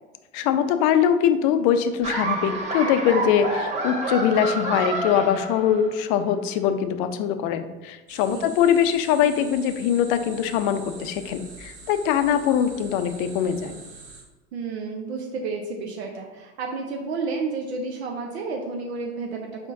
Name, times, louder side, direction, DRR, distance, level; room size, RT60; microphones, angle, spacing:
voice 1, 0.3-13.8, left 8 dB, 50° left, 9 dB, 0.5 m, -22 dB
Laughter, 2.0-6.1, right 2 dB, 20° right, 1.1 m, -28 dB
sound 1, 8.1-14.2, right 4 dB, 40° right, 1.1 m, -44 dB
voice 2, 14.5-19.7, right 4 dB, 70° right, 1 dB, 0.6 m, -31 dB
4.9 x 3.6 x 2.6 m, 1.1 s
figure-of-eight pair, 75°, 35 cm